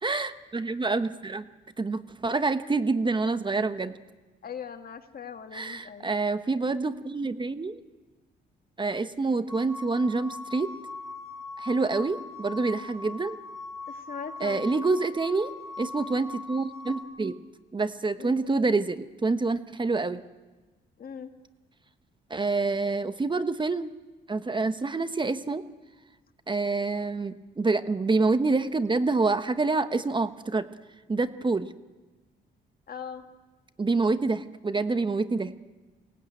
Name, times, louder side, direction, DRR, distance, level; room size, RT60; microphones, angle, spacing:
voice 1, 0.0-1.4 1.8-3.9 5.5-7.8 8.8-10.7 11.6-13.4 14.4-15.5 15.8-17.4 17.7-20.2 22.3-23.9 24.3-25.6 26.5-30.7 31.1-31.7 33.8-35.5, right 3 dB, 25° right, 11 dB, 1.0 m, -27 dB
voice 2, 4.4-6.1 13.9-14.9 18.2-18.5 21.0-21.3 32.9-33.3, left 7 dB, 50° left, 6 dB, 2.0 m, -40 dB
sound 1, 9.5-17.0, left 3 dB, 5° left, 7.5 m, -41 dB
23.5 x 18.5 x 9.0 m, 1.2 s
cardioid pair, 90°, 20 cm